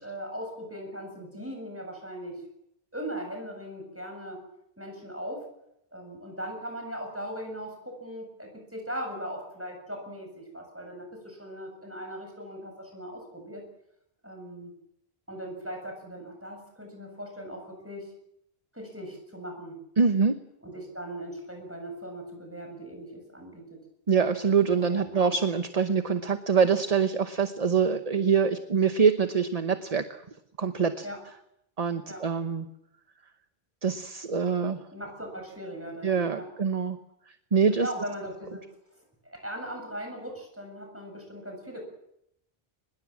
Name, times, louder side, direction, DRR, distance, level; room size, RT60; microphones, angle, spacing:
voice 1, 0.0-2.4 2.9-4.4 4.8-5.5 5.9-13.6 14.2-14.7 15.3-18.1 18.7-19.8 20.6-23.7 24.5-25.3 31.0-31.2 32.1-32.2 34.6-36.5 37.6-38.6 39.2-41.8, equal, 10° right, 2 dB, 7.8 m, -39 dB
voice 2, 20.0-20.4 24.1-30.1 30.6-31.1 31.8-32.7 33.8-34.8 36.0-37.0 37.5-37.9, right 6 dB, 40° right, 9 dB, 1.1 m, -24 dB
23.5 x 21.0 x 7.5 m, 0.79 s
omnidirectional pair, 1.1 m